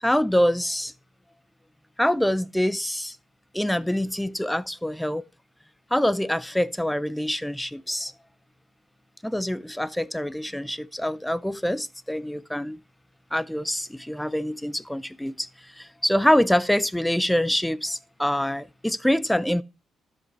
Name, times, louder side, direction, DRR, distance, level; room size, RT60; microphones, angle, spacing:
voice 1, 0.0-0.9 2.0-3.1 3.5-5.2 5.9-8.1 9.2-12.8 13.3-15.5 16.0-19.6, equal, 5° left, 0.5 m, -25 dB
12.5 x 5.3 x 4.2 m
cardioid pair, 90°, 0 cm